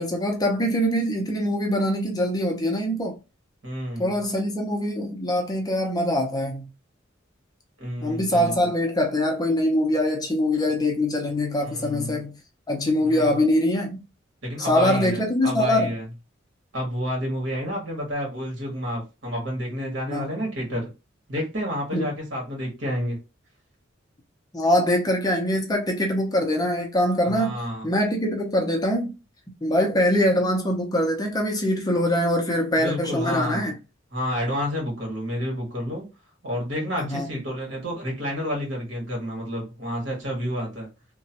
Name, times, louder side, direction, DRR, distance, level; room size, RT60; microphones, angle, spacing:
voice 1, 0.0-3.2 4.0-6.7 8.0-12.4 12.7-14.0 14.6-15.9 20.1-20.5 21.9-22.1 24.5-27.5 27.8-29.1 29.6-33.8 37.0-37.3, left 1 dB, 20° left, 0.6 m, -23 dB
voice 2, 3.6-4.1 7.8-8.7 11.6-12.2 13.0-13.4 14.4-16.0 16.7-20.9 21.3-23.2 27.2-27.9 32.8-33.7 34.1-36.1 36.4-40.9, equal, 65° right, 1.6 m, -30 dB
2.9 x 2.2 x 2.8 m
head